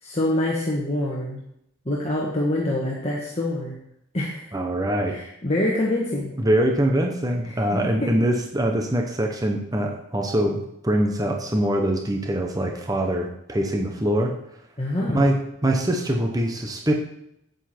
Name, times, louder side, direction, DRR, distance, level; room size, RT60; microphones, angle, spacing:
voice 1, 0.0-1.4 1.8-3.7 4.1-4.5 5.0-6.3 7.5-7.6 8.0-8.1 14.8-15.3, left 1 dB, 30° left, -4 dB, 1.5 m, -25 dB
voice 2, 4.5-5.2 6.4-14.3 15.1-16.9, right 1 dB, 15° right, 3 dB, 0.8 m, -23 dB
9.6 x 8.1 x 4.4 m, 0.78 s
head